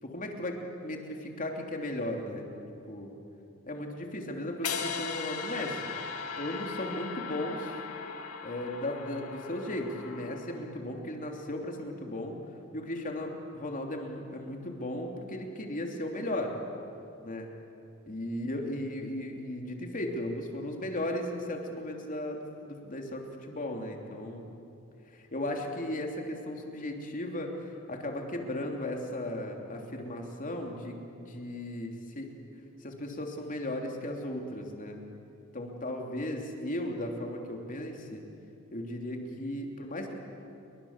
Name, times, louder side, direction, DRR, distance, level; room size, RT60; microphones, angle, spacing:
voice 1, 0.0-2.5 2.9-3.1 3.7-5.8 6.4-7.7 8.4-12.4 12.7-16.5 17.2-17.5 18.1-24.5 25.1-32.3 32.8-35.0 35.5-38.2 38.7-40.1, left 1 dB, 35° left, 2 dB, 3.2 m, -36 dB
sound 1, 4.6-10.8, left 6 dB, 75° left, 2.2 m, -38 dB
29.0 x 23.5 x 7.4 m, 2.7 s
head